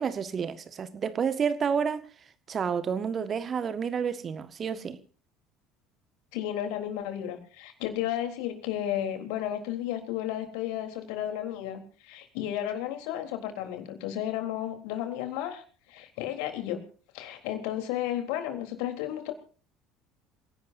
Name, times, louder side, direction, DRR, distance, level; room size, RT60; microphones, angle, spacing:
voice 1, 0.0-2.0 2.5-5.0, right 6 dB, 35° right, 1.6 m, -30 dB
voice 2, 6.3-15.6 15.9-16.8 17.1-19.3, left 11 dB, 60° left, 3.8 m, -33 dB
28.0 x 17.5 x 2.7 m
figure-of-eight pair, 65°, 0 cm